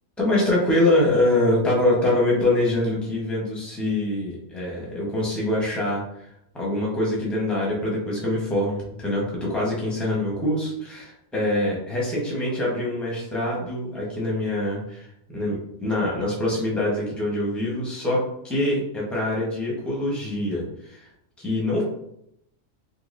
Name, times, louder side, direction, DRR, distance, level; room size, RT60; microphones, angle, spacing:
voice 1, 0.2-6.3 6.5-18.2 18.4-21.0 21.4-21.8, left 1 dB, ahead, -4 dB, 0.7 m, -24 dB
3.9 x 2.8 x 2.5 m, 0.77 s
omnidirectional pair, 1.4 m